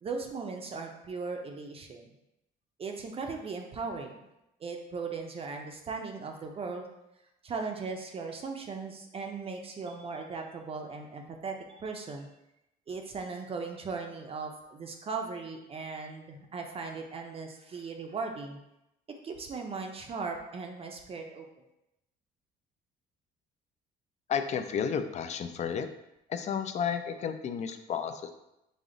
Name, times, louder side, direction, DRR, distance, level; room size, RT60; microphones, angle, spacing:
voice 1, 0.0-2.1 2.8-4.2 4.6-6.9 7.4-12.3 12.9-18.6 19.2-21.5, right 4 dB, 35° right, 3 dB, 0.5 m, -38 dB
voice 2, 24.3-25.9 26.3-28.3, left 7 dB, 40° left, 8 dB, 0.4 m, -32 dB
5.0 x 2.0 x 3.8 m, 0.88 s
cardioid pair, 110°, 17 cm